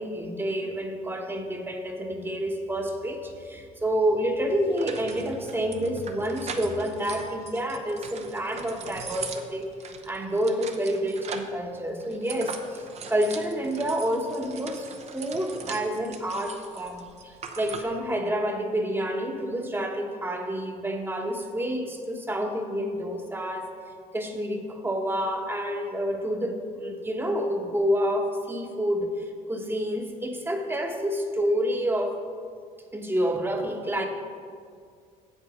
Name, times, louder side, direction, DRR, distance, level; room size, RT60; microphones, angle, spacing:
voice 1, 0.0-9.7 10.0-23.7 24.1-32.2 32.9-34.1, equal, 15° right, 4 dB, 1.1 m, -28 dB
sound 1, 4.1-4.2 4.8-11.6 12.0-18.0, right 5 dB, 45° right, 0.8 m, -41 dB
8.1 x 7.5 x 5.0 m, 2.2 s
cardioid pair, 100°, 15 cm